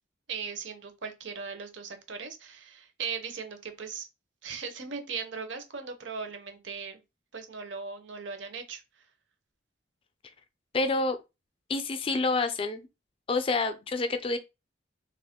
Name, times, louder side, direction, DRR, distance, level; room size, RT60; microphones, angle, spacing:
voice 1, 0.3-4.1 4.4-7.0 7.3-8.8, right 5 dB, 70° right, 0.6 m, -38 dB
voice 2, 10.7-11.2 11.7-12.9 13.3-14.4, left 3 dB, 30° left, 0.4 m, -28 dB
3.0 x 2.4 x 3.5 m
head